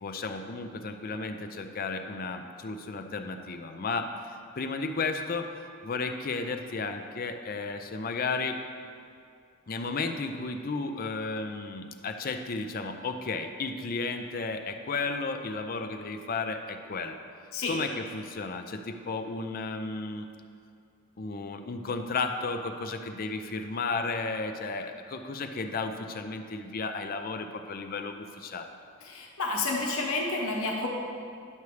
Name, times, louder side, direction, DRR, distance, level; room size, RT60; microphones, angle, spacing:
voice 1, 0.0-5.5 5.8-8.6 9.7-17.2 17.7-20.3 21.2-28.7, left 3 dB, 45° left, 7 dB, 0.5 m, -33 dB
voice 2, 29.0-30.9, left 3 dB, 85° left, -1 dB, 1.1 m, -30 dB
10.5 x 6.9 x 3.3 m, 2.4 s
head